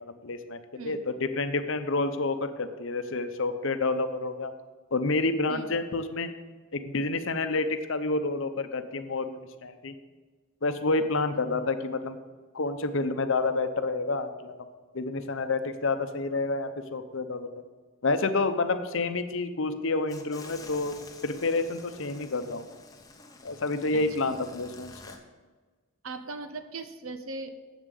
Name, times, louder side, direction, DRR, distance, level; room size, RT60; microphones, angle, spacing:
voice 1, 0.0-4.5 4.9-6.3 6.7-9.9 10.6-12.2 12.5-14.5 14.9-17.5 18.0-20.9 21.2-22.7 23.4-25.2, left 3 dB, 60° left, 9 dB, 0.8 m, -29 dB
sound 1, 20.1-25.2, left 3 dB, 15° left, 0.9 m, -49 dB
voice 2, 26.0-27.5, right 3 dB, 70° right, 9 dB, 0.8 m, -38 dB
7.5 x 7.3 x 8.2 m, 1.3 s
head